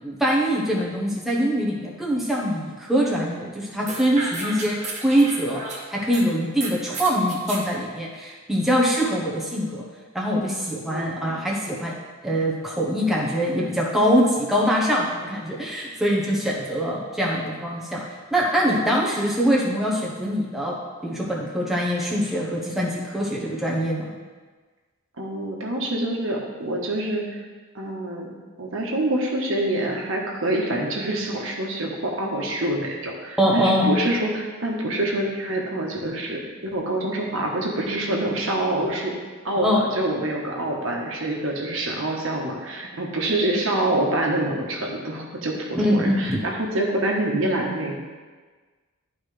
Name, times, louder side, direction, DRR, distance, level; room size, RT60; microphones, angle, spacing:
voice 1, 0.0-5.6 5.9-9.8 10.1-11.9 12.2-18.0 18.3-24.1 33.4-33.9 39.6-39.8 45.7-46.4, equal, ahead, -4 dB, 1.0 m, -23 dB
sound 1, 3.9-6.2 6.6-7.6, right 2 dB, 35° right, 1.1 m, -33 dB
voice 2, 10.9-11.4 25.2-27.4 27.7-28.3 28.6-39.1 39.4-48.0, right 1 dB, 70° right, -1 dB, 1.3 m, -26 dB
11.5 x 4.6 x 3.3 m, 1.4 s
head